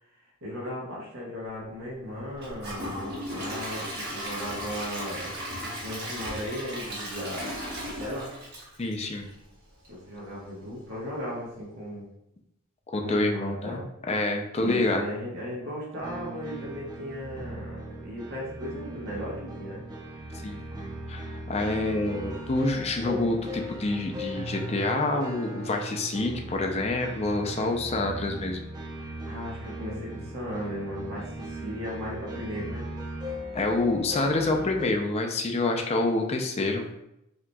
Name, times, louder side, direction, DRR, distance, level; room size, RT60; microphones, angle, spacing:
voice 1, 0.4-5.3 5.8-7.6 8.0-8.3 9.9-12.0 13.0-13.8 14.6-19.8 29.2-32.9, equal, 80° right, -5 dB, 1.3 m, -36 dB
Gurgling / Toilet flush / Trickle dribble, 2.4-9.4 9.8-9.9 10.4-10.5, equal, 50° right, 1.2 m, -36 dB
voice 2, 8.8-9.3 12.9-15.1 20.4-28.6 33.5-36.8, left 2 dB, 30° left, 3 dB, 0.4 m, -27 dB
sound 1, 16.0-34.9, equal, 20° right, 0.6 m, -38 dB
5.9 x 2.8 x 2.3 m, 0.84 s
head